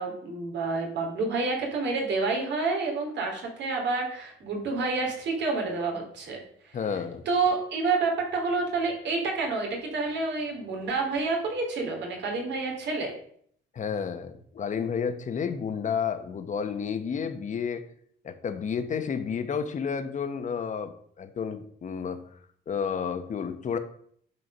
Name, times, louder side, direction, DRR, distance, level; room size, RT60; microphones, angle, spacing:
voice 1, 0.0-6.4 7.2-13.1, right 3 dB, 70° right, 1 dB, 3.0 m, -28 dB
voice 2, 6.7-7.2 13.7-17.8 18.2-22.3 22.7-23.8, left 6 dB, 40° left, 9 dB, 1.0 m, -31 dB
11.5 x 4.5 x 5.4 m, 0.63 s
cardioid pair, 145°, 19 cm